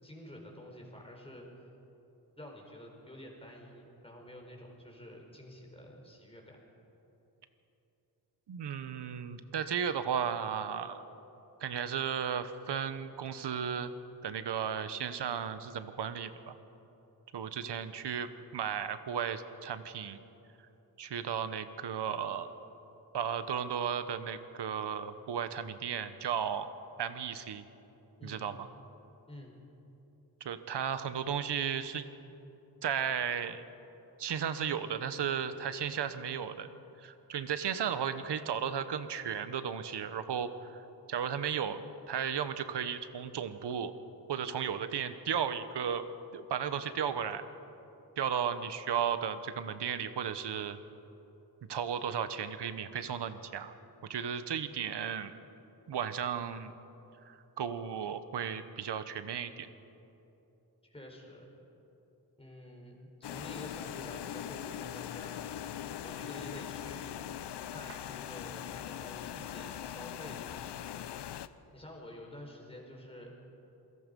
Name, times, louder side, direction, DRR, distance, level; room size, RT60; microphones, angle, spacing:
voice 1, 0.0-1.5 2.4-6.6 28.2-28.5 29.3-29.6 60.9-61.5 62.4-65.5 66.0-67.3 67.7-71.0 71.7-73.3, left 1 dB, 15° left, 0 dB, 4.3 m, -49 dB
voice 2, 8.5-11.0 11.6-13.9 14.2-16.5 17.3-20.2 21.0-22.5 23.1-26.7 27.0-27.6 28.2-28.7 30.4-32.1 32.8-33.6 34.2-36.7 37.0-40.8 41.1-41.8 42.1-43.9 44.3-46.0 46.3-47.5 48.2-50.8 51.7-53.7 54.0-55.3 55.9-56.7 57.3-59.7, right 8 dB, 80° right, 11 dB, 1.1 m, -34 dB
sound 1, 63.2-71.5, left 10 dB, 85° left, 0.7 m, -41 dB
27.5 x 17.5 x 5.3 m, 3.0 s
wide cardioid pair, 105°, 40 cm